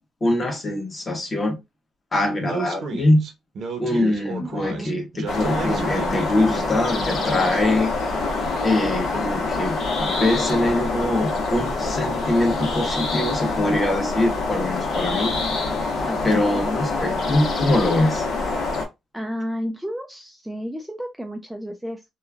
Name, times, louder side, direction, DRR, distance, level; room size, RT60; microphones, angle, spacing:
voice 1, 0.2-1.6 2.1-3.3 3.8-7.9 8.6-15.4 16.2-18.3, left 1 dB, 25° left, 1.1 m, -23 dB
Speech, 2.4-7.6, right 4 dB, 65° right, 0.8 m, -33 dB
voice 2, 4.4-4.9 16.1-16.7 19.1-22.0, equal, 5° right, 0.4 m, -32 dB
sound 1, 5.3-18.9, left 3 dB, 70° left, 0.9 m, -25 dB
3.0 x 2.3 x 2.3 m
cardioid pair, 90°, 0 cm